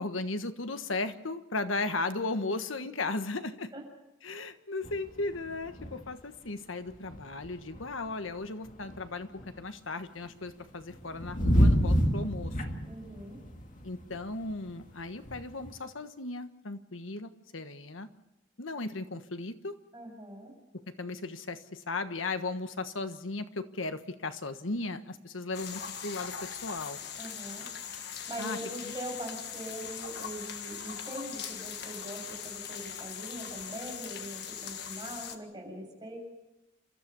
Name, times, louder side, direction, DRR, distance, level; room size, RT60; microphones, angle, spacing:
voice 1, 0.0-3.7 4.2-9.3 9.6-12.6 13.8-18.1 18.6-19.7 20.9-27.0 28.4-28.6, left 3 dB, 90° left, 9 dB, 1.4 m, -36 dB
sound 1, 4.8-6.2 6.5-6.6 6.9-9.6 10.2-15.7, equal, 40° left, 2.3 m, -29 dB
voice 2, 12.9-13.4 19.9-20.5 27.2-27.7 28.3-36.2, right 1 dB, 20° right, -1 dB, 7.2 m, -42 dB
sound 2, 25.5-35.4, left 8 dB, 55° left, 1.6 m, -40 dB
29.0 x 13.5 x 6.9 m, 0.96 s
head